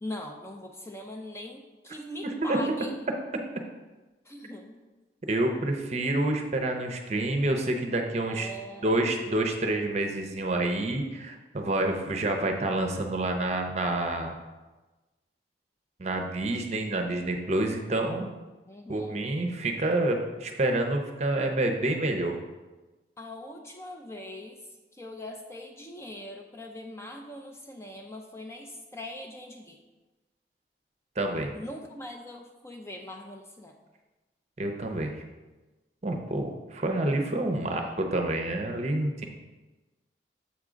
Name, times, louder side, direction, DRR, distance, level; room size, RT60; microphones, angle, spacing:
voice 1, 0.0-2.9 4.3-4.8 8.3-9.0 18.7-19.2 23.2-24.6 25.0-29.8 31.5-33.7, left 1 dB, 15° left, 2 dB, 0.4 m, -41 dB
voice 2, 2.2-2.6 5.3-8.5 8.8-14.3 16.0-18.3 18.9-22.4 31.2-31.5 34.6-35.1 36.0-39.2, right 2 dB, 35° right, 4 dB, 0.6 m, -28 dB
7.3 x 3.7 x 5.0 m, 1.2 s
head